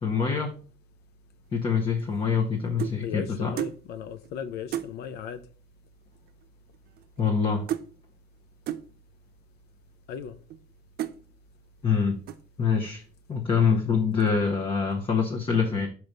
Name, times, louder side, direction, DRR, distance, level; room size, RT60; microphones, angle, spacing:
voice 1, 0.0-0.5 1.5-3.5 7.2-7.7 11.8-12.2 12.6-13.0 13.3-15.9, left 5 dB, 30° left, 0.9 m, -25 dB
sound 1, 1.9-3.0 3.6-3.8 4.2-4.3 4.7-4.9 5.8-5.9 6.1-6.5 6.7-7.4 7.7-7.9 8.7-8.9 9.6-9.7 10.3-10.6 11.0-11.2 11.7-12.0 12.3-12.6, right 11 dB, 65° right, 0.5 m, -34 dB
voice 2, 3.0-5.4 10.1-10.4, left 7 dB, 70° left, 0.6 m, -36 dB
5.1 x 4.7 x 5.3 m
cardioid pair, 110°, 17 cm